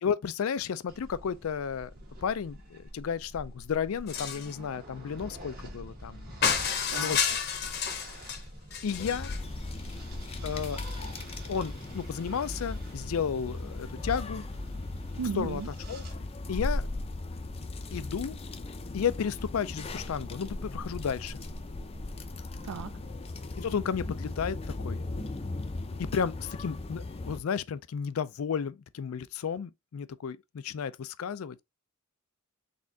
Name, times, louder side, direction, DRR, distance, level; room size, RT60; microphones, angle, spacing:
voice 1, 0.0-1.9 2.2-6.3 7.0-7.4 8.8-9.3 10.4-10.8 11.5-14.5 15.4-15.6 15.9-16.0 16.5-16.9 17.9-18.4 18.9-21.4 23.6-25.0 26.0-31.6, left 7 dB, 80° left, 0.4 m, -33 dB
sound 1, 0.9-16.1, right 1 dB, 45° right, 1.3 m, -46 dB
sound 2, 4.1-4.5 6.4-8.4 8.7-9.4, left 7 dB, 50° left, 0.8 m, -30 dB
sound 3, 8.9-27.4, left 2 dB, 30° left, 0.5 m, -37 dB
voice 2, 15.2-15.7 22.6-23.0, right 6 dB, 85° right, 0.4 m, -35 dB
4.2 x 3.6 x 2.7 m
head